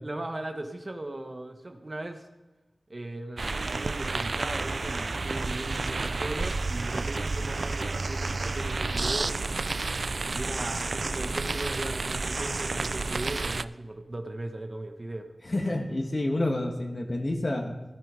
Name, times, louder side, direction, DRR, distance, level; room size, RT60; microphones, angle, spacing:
voice 1, 0.0-2.2 2.9-9.4 10.3-15.3, right 1 dB, 45° right, 5 dB, 1.3 m, -38 dB
sound 1, 3.4-13.6, right 3 dB, 65° right, 0.3 m, -30 dB
voice 2, 15.5-17.8, left 1 dB, 50° left, 1 dB, 1.8 m, -28 dB
14.5 x 10.5 x 5.2 m, 1.1 s
cardioid pair, 40°, 0 cm